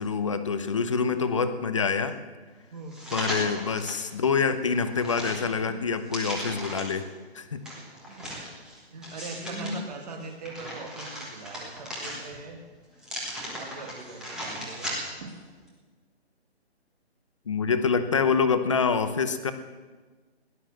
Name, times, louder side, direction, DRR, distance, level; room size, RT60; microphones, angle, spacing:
voice 1, 0.0-2.2 3.1-7.1 7.3-7.6 17.5-19.5, left 5 dB, 30° left, 10 dB, 0.8 m, -26 dB
sound 1, 2.9-4.0 4.5-7.0 7.7-9.7 10.2-12.5 13.0-15.3 15.7-15.8, equal, ahead, 1.5 m, -37 dB
voice 2, 7.8-8.6 8.9-12.6 13.5-15.4, right 3 dB, 40° right, 2 dB, 2.2 m, -42 dB
16.5 x 11.5 x 7.6 m, 1.4 s
hypercardioid pair, 170°, 33 cm